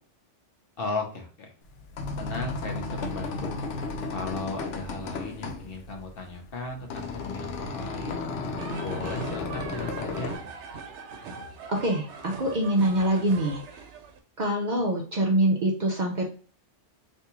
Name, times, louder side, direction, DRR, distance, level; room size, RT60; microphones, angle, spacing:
voice 1, 0.8-1.5 2.2-3.6 4.1-8.3 8.8-10.3, left 3 dB, 60° left, 3 dB, 0.8 m, -36 dB
sound 1, 1.6-10.4, left 3 dB, 90° left, 0.9 m, -34 dB
sound 2, 8.6-14.2, right 5 dB, 75° right, 0.9 m, -41 dB
voice 2, 11.7-13.9 14.4-16.3, right 1 dB, 55° right, -1 dB, 0.5 m, -25 dB
3.5 x 2.6 x 2.8 m, 0.39 s
omnidirectional pair, 1.2 m